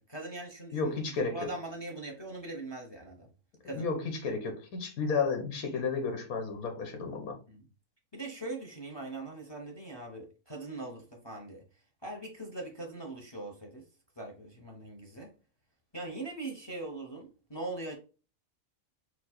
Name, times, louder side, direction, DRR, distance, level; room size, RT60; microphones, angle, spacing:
voice 1, 0.0-1.0 1.3-3.3 3.6-3.9 7.5-7.6 8.1-11.6 12.0-13.8 14.2-15.3 15.9-18.0, right 2 dB, 20° left, 0.8 m, -41 dB
voice 2, 0.7-1.3 3.7-7.4, left 4 dB, 90° left, 1.5 m, -32 dB
4.5 x 2.5 x 4.3 m
omnidirectional pair, 1.5 m